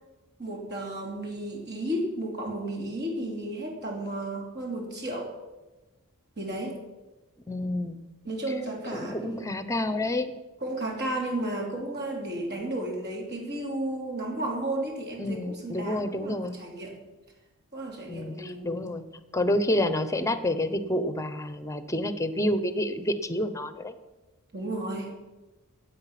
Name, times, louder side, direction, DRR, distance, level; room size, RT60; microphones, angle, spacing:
voice 1, 0.4-5.3 6.4-6.8 8.2-9.5 10.6-17.0 17.7-18.8 19.5-19.6 24.5-25.1, right 1 dB, 50° right, 0 dB, 3.1 m, -33 dB
voice 2, 7.5-8.0 8.9-10.3 15.2-16.5 18.1-19.0 19.3-23.9, left 1 dB, 15° left, 11 dB, 0.8 m, -28 dB
16.5 x 8.4 x 5.9 m, 1.1 s
head